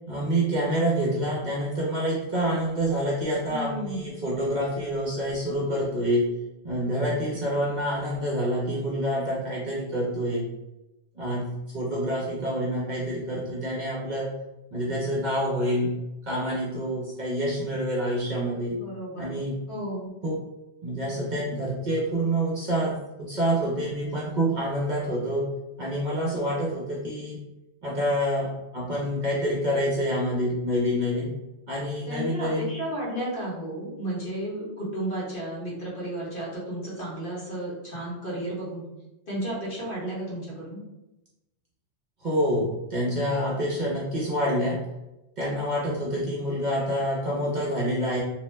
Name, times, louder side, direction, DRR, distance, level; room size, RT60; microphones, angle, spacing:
voice 1, 0.1-6.3 6.6-10.5 11.1-14.3 14.7-16.0 16.2-18.8 19.2-19.6 20.2-20.4 20.8-25.5 25.8-27.4 27.8-31.3 31.7-32.8 42.2-44.8 45.4-48.2, equal, 50° right, -4 dB, 0.7 m, -27 dB
voice 2, 3.5-4.1 18.7-19.4 19.7-20.1 32.1-38.8 39.3-40.8, right 1 dB, 55° left, -6 dB, 1.2 m, -33 dB
2.6 x 2.0 x 3.2 m, 0.96 s
omnidirectional pair, 1.1 m